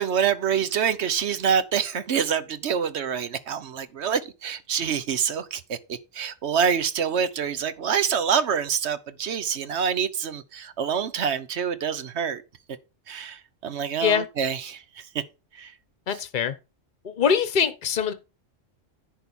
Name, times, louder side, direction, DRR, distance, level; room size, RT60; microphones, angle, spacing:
voice 1, 0.0-12.4 13.1-14.8 15.1-15.2 15.6-15.7, right 7 dB, 60° right, 1.1 m, -26 dB
voice 2, 16.1-16.5 17.0-18.1, left 7 dB, 40° left, 1.0 m, -23 dB
10.5 x 3.8 x 7.0 m
omnidirectional pair, 1.3 m